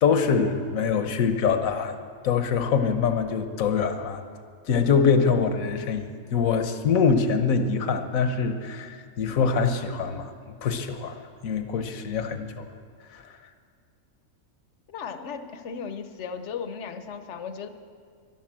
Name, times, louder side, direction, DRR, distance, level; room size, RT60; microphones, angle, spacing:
voice 1, 0.0-2.0 2.2-4.2 4.7-12.7 13.1-13.2, left 5 dB, 75° left, 8 dB, 1.3 m, -24 dB
voice 2, 14.9-17.7, left 6 dB, 60° left, 10 dB, 1.1 m, -36 dB
12.0 x 11.5 x 7.4 m, 2.2 s
omnidirectional pair, 1.4 m